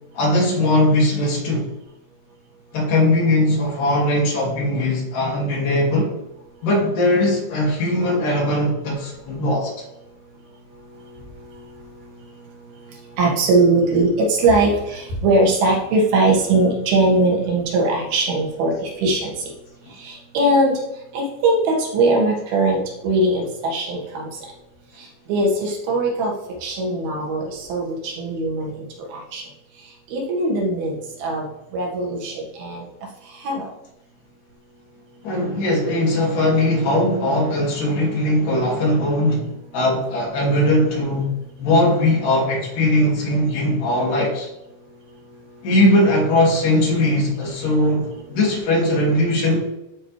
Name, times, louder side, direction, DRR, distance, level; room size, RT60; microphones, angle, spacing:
voice 1, 0.1-1.7 2.7-6.1 6.6-9.7 35.2-41.3 41.6-44.5 45.6-49.6, left 1 dB, 65° left, -3 dB, 3.6 m, -19 dB
voice 2, 13.2-19.3 20.0-20.8 21.1-24.3 25.0-26.3 26.6-28.9 29.1-29.4 30.1-31.0 31.2-31.5 31.7-32.8 33.4-33.7, right 2 dB, 90° right, -2 dB, 3.6 m, -20 dB
12.0 x 4.6 x 3.2 m, 0.92 s
omnidirectional pair, 4.2 m